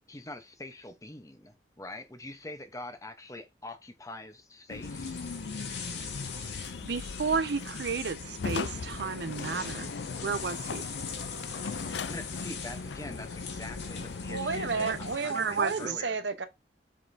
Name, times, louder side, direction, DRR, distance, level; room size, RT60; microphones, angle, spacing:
voice 1, 0.1-5.2 12.1-16.2, left 2 dB, 20° left, 0.9 m, -44 dB
sound 1, 4.7-15.2, left 4 dB, 90° left, 0.5 m, -38 dB
sound 2, 4.8-15.9, left 5 dB, 75° left, 2.3 m, -42 dB
voice 2, 6.8-10.8 14.9-15.0 15.3-16.0, right 5 dB, 70° right, 0.5 m, -32 dB
voice 3, 14.3-16.5, right 4 dB, 90° right, 1.0 m, -32 dB
7.5 x 5.0 x 2.8 m
head